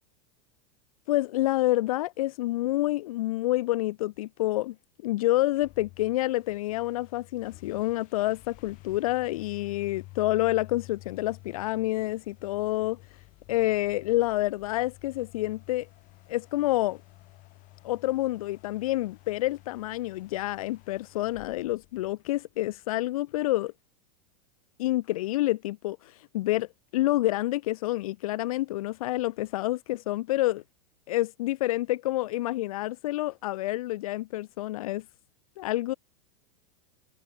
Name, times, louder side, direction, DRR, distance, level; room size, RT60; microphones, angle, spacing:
voice 1, 1.1-4.7 5.0-15.9 16.3-17.0 17.8-23.7 24.8-30.6 31.1-35.0 35.6-35.9, left 17 dB, 75° left, 0.6 m, -28 dB
sound 1, 5.3-22.8, left 21 dB, 45° left, 4.9 m, -52 dB
supercardioid pair, 130°, 18 cm